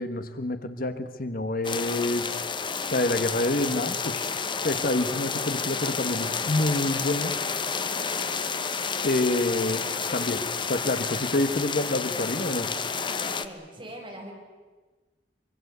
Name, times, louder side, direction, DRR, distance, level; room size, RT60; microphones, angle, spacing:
voice 1, 0.0-2.3 2.9-4.3 4.6-7.4 9.0-9.9 10.1-12.7, left 2 dB, 55° left, 10 dB, 1.3 m, -27 dB
sound 1, 1.6-13.5, left 5 dB, 25° left, 1.0 m, -30 dB
voice 2, 13.2-14.3, right 1 dB, 30° right, -1 dB, 6.4 m, -42 dB
24.5 x 23.0 x 8.1 m, 1.3 s
head